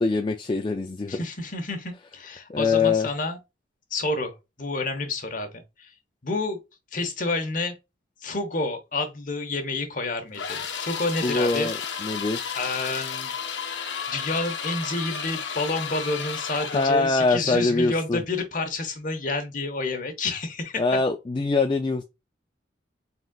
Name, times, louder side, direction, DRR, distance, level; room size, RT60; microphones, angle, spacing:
voice 1, 0.0-1.2 2.5-3.1 11.2-12.5 16.7-18.2 20.8-22.0, left 3 dB, 25° left, 0.3 m, -23 dB
voice 2, 1.1-3.4 3.9-5.9 6.2-6.6 6.9-7.7 8.2-11.7 12.5-13.3 14.1-21.0, left 2 dB, 45° left, 1.0 m, -29 dB
sound 1, 10.3-17.0, left 6 dB, 70° left, 0.8 m, -32 dB
4.0 x 3.7 x 2.3 m
head